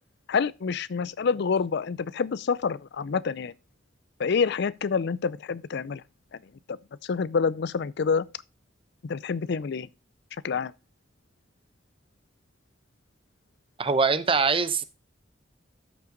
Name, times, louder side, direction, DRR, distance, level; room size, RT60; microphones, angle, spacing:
voice 1, 0.3-3.5 4.2-6.0 6.7-6.8 7.0-8.2 9.0-9.9 10.4-10.7, left 5 dB, 60° left, 0.5 m, -27 dB
voice 2, 13.8-14.8, right 4 dB, 30° right, 0.8 m, -23 dB
13.0 x 5.6 x 3.8 m
head